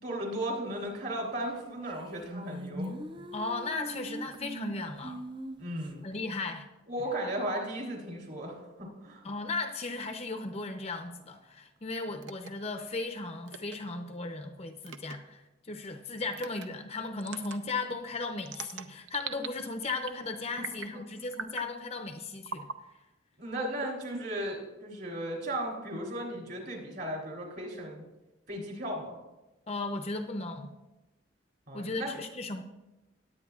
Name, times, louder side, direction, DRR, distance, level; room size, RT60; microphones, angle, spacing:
voice 1, 0.0-2.9 5.6-6.0 6.9-9.2 20.7-21.0 23.4-28.0 28.5-29.2 31.7-32.1, right 1 dB, 50° right, 0 dB, 3.1 m, -36 dB
sound 1, 1.5-1.6 1.9-5.9, right 1 dB, 25° right, 0.5 m, -41 dB
voice 2, 3.3-5.2 6.0-6.7 9.2-22.7 29.7-30.7 31.7-32.6, left 3 dB, 30° left, 5 dB, 0.6 m, -36 dB
sound 2, 12.2-12.5 13.5-13.8 14.8-15.1 16.3-16.7 17.2-17.6 18.4-19.5 19.8-20.2 20.6-21.0 21.3-21.7 22.4-22.8 23.6-24.5, right 5 dB, 70° right, 0.6 m, -40 dB
19.5 x 8.6 x 2.4 m, 1.0 s
head